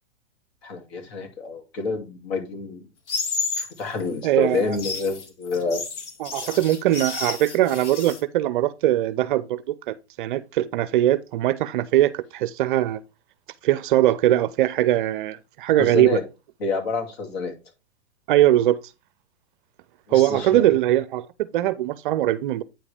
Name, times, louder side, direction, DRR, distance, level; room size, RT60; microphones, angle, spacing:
voice 1, 0.6-2.9 3.6-5.8 15.8-16.2 16.6-17.5 20.1-20.7, left 4 dB, 55° left, 2.6 m, -28 dB
sound 1, 3.1-3.7 4.6-8.2, left 4 dB, 70° left, 1.9 m, -31 dB
voice 2, 4.2-4.8 6.2-13.0 13.6-16.2 18.3-18.8 20.1-21.3 21.5-22.6, right 14 dB, 45° right, 0.5 m, -21 dB
8.9 x 4.8 x 3.5 m
hypercardioid pair, 115°, 36 cm